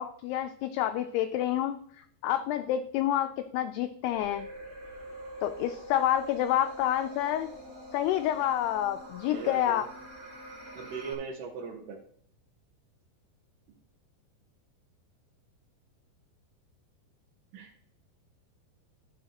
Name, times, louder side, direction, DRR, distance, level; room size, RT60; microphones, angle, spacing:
voice 1, 0.0-1.8 2.2-4.5 5.4-7.5 7.9-9.9, left 12 dB, 85° left, 8 dB, 2.3 m, -28 dB
sound 1, 4.1-11.1, right 1 dB, 45° right, 1.0 m, -44 dB
voice 2, 9.3-9.8 10.8-12.0 17.5-17.8, right 5 dB, 75° right, 0 dB, 3.0 m, -39 dB
14.0 x 7.0 x 2.9 m, 0.62 s
omnidirectional pair, 5.1 m